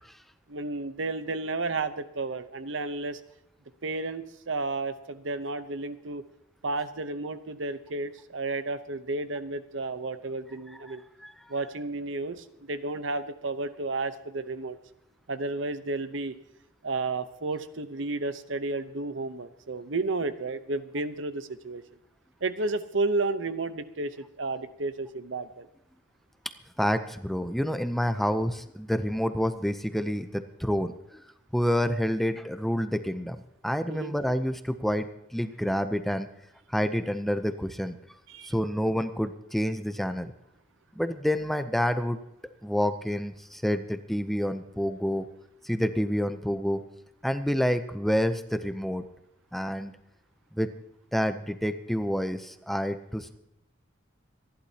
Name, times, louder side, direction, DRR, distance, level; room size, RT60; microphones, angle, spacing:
voice 1, 0.5-3.2 3.8-6.2 6.6-11.0 11.5-14.8 15.3-16.3 16.8-21.8 22.4-25.7 33.9-34.1 38.3-38.5, right 3 dB, 70° right, 12 dB, 0.9 m, -32 dB
voice 2, 10.7-11.3 26.8-31.2 31.5-36.3 36.7-38.0 38.5-40.3 40.9-42.2 42.6-45.3 45.6-46.8 47.2-49.0 49.5-49.9 50.5-50.7 51.1-53.4, equal, ahead, 10 dB, 0.6 m, -28 dB
27.0 x 11.5 x 2.9 m, 0.82 s
head